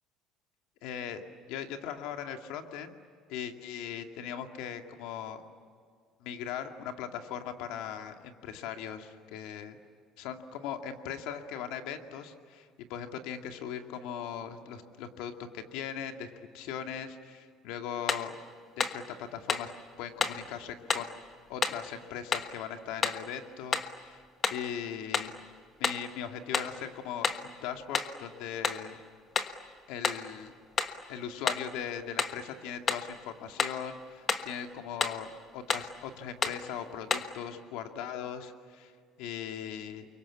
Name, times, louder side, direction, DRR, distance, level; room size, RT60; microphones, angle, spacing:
voice 1, 0.8-1.2 1.5-2.9 3.3-5.4 6.2-9.8 10.2-18.3 18.8-19.7 20.0-21.1 21.5-24.2 24.5-25.3 25.8-29.0 29.9-30.5 31.1-35.3 35.5-38.9 39.2-40.1, left 8 dB, 80° left, 5 dB, 2.3 m, -39 dB
sound 1, 18.1-18.3 18.8-19.0 19.5-19.7 20.2-20.4 20.9-21.1 21.6-21.8 22.3-22.5 23.0-23.3 23.7-24.0 24.4-24.7 25.1-25.4 25.8-26.1 26.5-26.8 27.2-27.5 27.9-28.2 28.6-28.9 29.4-29.6 30.0-30.3 30.8-31.0 31.5-31.7 32.2-32.4 32.9-33.1 33.6-33.8 34.3-34.5 35.0-35.3 35.7-35.9 36.4-36.6 37.1-37.4, left 5 dB, 30° left, 1.4 m, -31 dB
29.5 x 24.0 x 8.5 m, 2.1 s
cardioid pair, 150°, 0 cm